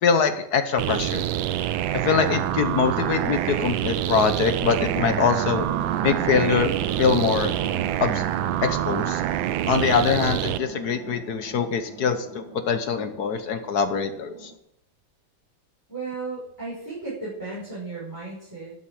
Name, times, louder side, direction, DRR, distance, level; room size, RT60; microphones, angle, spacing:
voice 1, 0.0-1.3 2.0-5.6 6.0-6.7 7.0-7.5 8.0-8.2 8.6-9.2 9.7-14.5, left 6 dB, 60° left, 9 dB, 1.3 m, -23 dB
sound 1, 0.8-10.6, right 13 dB, 90° right, 1.5 m, -26 dB
sound 2, 4.4-14.6, right 5 dB, 70° right, 2.0 m, -38 dB
voice 2, 15.9-18.7, right 3 dB, 10° right, -10 dB, 5.9 m, -34 dB
12.0 x 8.1 x 7.7 m, 0.78 s
omnidirectional pair, 2.1 m